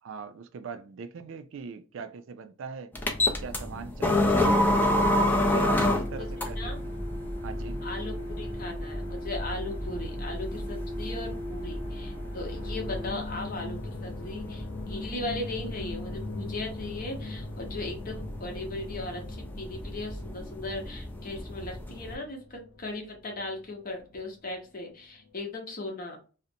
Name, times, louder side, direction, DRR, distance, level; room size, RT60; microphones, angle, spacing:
voice 1, 0.0-2.9 3.4-4.4 5.0-6.9 7.4-7.8, right 5 dB, 65° right, 0.3 m, -40 dB
sound 1, 2.9-22.1, left 1 dB, 10° left, 0.4 m, -31 dB
sound 2, 4.6-13.1, equal, 10° right, 1.0 m, -36 dB
voice 2, 7.8-26.2, left 2 dB, 45° left, 0.8 m, -38 dB
sound 3, 12.5-24.6 24.9-25.3, left 3 dB, 75° left, 0.5 m, -42 dB
2.5 x 2.1 x 2.6 m
head